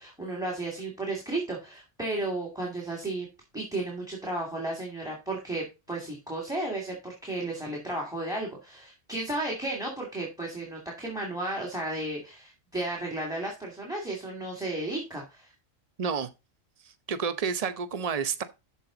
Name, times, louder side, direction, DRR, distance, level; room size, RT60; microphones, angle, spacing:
voice 1, 0.0-3.3 3.5-15.5, right 2 dB, 5° right, 2.4 m, -33 dB
voice 2, 16.0-16.3 17.1-18.4, right 6 dB, 35° right, 0.8 m, -29 dB
13.0 x 4.6 x 3.9 m
omnidirectional pair, 1.3 m